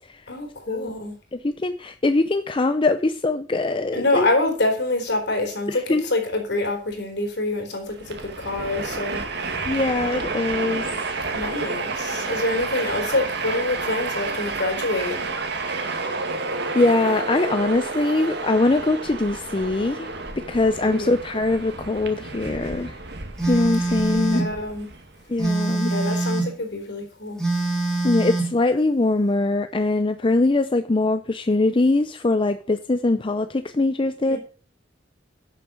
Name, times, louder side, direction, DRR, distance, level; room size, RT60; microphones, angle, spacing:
voice 1, 0.3-1.2 3.9-9.2 11.3-15.1 20.8-21.1 24.1-24.9 25.9-27.4 34.3-34.4, left 2 dB, 65° left, 4.1 m, -26 dB
voice 2, 1.3-4.3 5.7-6.1 9.7-11.2 15.7-16.0 16.7-20.1 20.4-23.0 23.5-24.5 25.3-25.9 28.0-34.4, left 2 dB, 30° left, 0.5 m, -22 dB
Train, 7.9-25.5, right 3 dB, 60° right, 1.9 m, -30 dB
Telephone, 23.4-24.5 25.4-26.5 27.4-28.5, right 3 dB, 5° left, 3.2 m, -24 dB
11.0 x 7.0 x 6.4 m
head